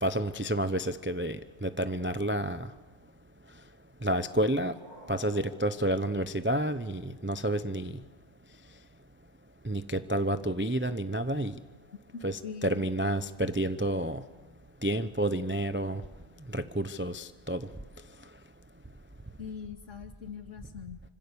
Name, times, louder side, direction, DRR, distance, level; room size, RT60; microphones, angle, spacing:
voice 1, 0.0-2.7 4.0-4.7 5.1-7.9 9.6-11.6 12.2-14.2 14.8-16.0 16.5-17.7, right 1 dB, 15° right, 11 dB, 0.5 m, -30 dB
sound 1, 4.1-7.0, equal, 30° right, 6.0 m, -54 dB
voice 2, 12.1-12.9 19.4-21.0, left 6 dB, 60° left, 6 dB, 2.4 m, -42 dB
26.5 x 25.5 x 7.0 m, 1.2 s
omnidirectional pair, 1.5 m